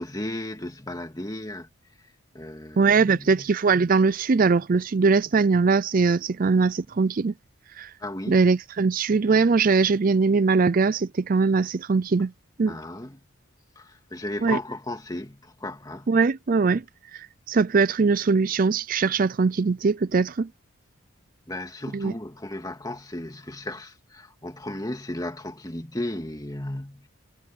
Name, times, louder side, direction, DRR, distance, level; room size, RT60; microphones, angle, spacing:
voice 1, 0.0-1.7 2.3-3.5 8.0-8.4 12.7-13.2 13.8-16.1 21.5-27.1, left 1 dB, 15° left, 2.3 m, -35 dB
voice 2, 2.8-7.3 7.8-7.9 8.3-12.3 12.6-12.8 14.4-14.6 16.1-16.8 17.1-20.5 21.9-22.1, right 4 dB, 40° right, 0.4 m, -21 dB
head